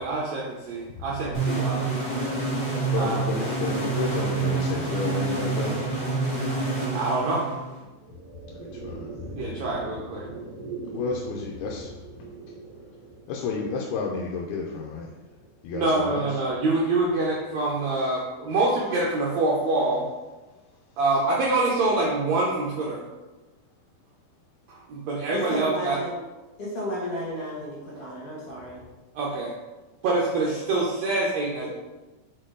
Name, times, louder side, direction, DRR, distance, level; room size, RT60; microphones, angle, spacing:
voice 1, 0.0-1.8 3.0-3.2 6.9-7.5 9.4-10.3 15.7-20.0 21.0-23.0 24.7-26.0 29.1-29.5 30.0-31.7, right 2 dB, 80° right, -4 dB, 1.6 m, -25 dB
sound 1, 1.3-7.8, right 3 dB, 10° left, 0.6 m, -27 dB
voice 2, 2.9-5.8 8.3-9.6 10.9-13.0 13.3-16.4 20.5-21.0, left 4 dB, 90° left, -1 dB, 2.6 m, -33 dB
sound 2, 7.7-18.2, right 3 dB, 30° right, 1.9 m, -43 dB
voice 3, 25.3-26.2 26.6-28.8 31.6-31.7, equal, 65° left, -6 dB, 1.5 m, -33 dB
6.4 x 4.8 x 3.8 m, 1.1 s
omnidirectional pair, 4.3 m